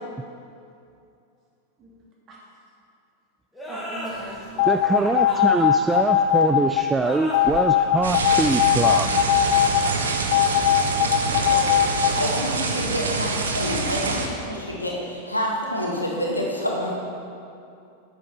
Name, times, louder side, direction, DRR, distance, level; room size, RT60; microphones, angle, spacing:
sound 1, 3.5-12.8, equal, 5° left, 2.4 m, -38 dB
voice 1, 3.7-5.0 10.9-12.0 15.6-16.0, right 1 dB, 30° right, -4 dB, 2.6 m, -41 dB
sound 2, 4.6-6.8 7.3-9.8 10.3-12.1, left 11 dB, 45° left, 0.6 m, -19 dB
voice 2, 4.7-9.1, right 3 dB, 10° right, 7 dB, 0.3 m, -23 dB
sound 3, 8.0-14.3, right 4 dB, 70° right, 1.0 m, -26 dB
voice 3, 11.2-16.9, equal, 85° left, -2 dB, 1.9 m, -28 dB
9.0 x 8.4 x 5.8 m, 2.5 s
figure-of-eight pair, 90°, 0 cm